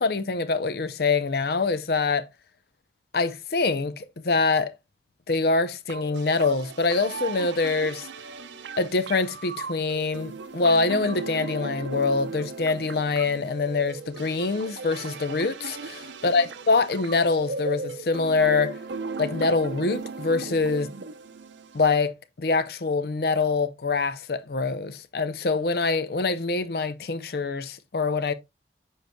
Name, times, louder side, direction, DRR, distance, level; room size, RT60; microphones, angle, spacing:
voice 1, 0.0-2.3 3.1-4.7 5.3-8.1 8.8-18.8 19.2-20.9 21.7-28.3, left 3 dB, 55° left, 0.5 m, -25 dB
sound 1, 5.9-21.9, right 4 dB, 85° right, 0.7 m, -37 dB
7.8 x 6.4 x 2.2 m
head